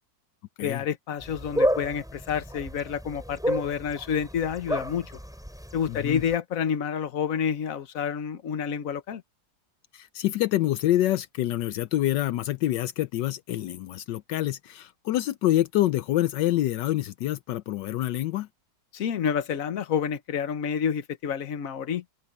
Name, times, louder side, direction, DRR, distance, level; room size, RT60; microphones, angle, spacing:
voice 1, 0.6-5.1 5.7-9.2 18.9-22.0, left 7 dB, 50° left, 1.4 m, -29 dB
sound 1, 1.2-6.4, equal, ahead, 4.2 m, -31 dB
voice 2, 5.9-6.2 9.9-18.5, left 14 dB, 80° left, 1.3 m, -26 dB
open air
omnidirectional pair, 2.0 m